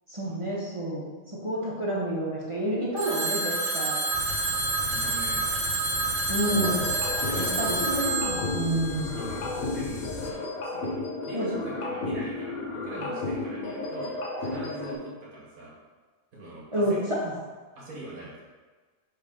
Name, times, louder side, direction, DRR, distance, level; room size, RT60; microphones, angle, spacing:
voice 1, 0.1-1.1 1.4-4.0 6.3-6.9 7.4-9.2 11.3-11.5 16.7-17.3, right 1 dB, 25° right, -7 dB, 1.0 m, -29 dB
Telephone, 3.0-9.8, right 3 dB, 60° right, 1.2 m, -29 dB
sound 1, 4.1-10.3, left 6 dB, 60° left, 0.5 m, -39 dB
voice 2, 4.9-5.5 7.2-7.6 9.2-15.7 16.3-17.0 17.8-18.4, right 1 dB, 85° right, -5 dB, 2.3 m, -42 dB
sound 2, 6.4-15.0, left 2 dB, 80° left, 1.4 m, -33 dB
6.4 x 3.4 x 5.0 m, 1.4 s
omnidirectional pair, 1.5 m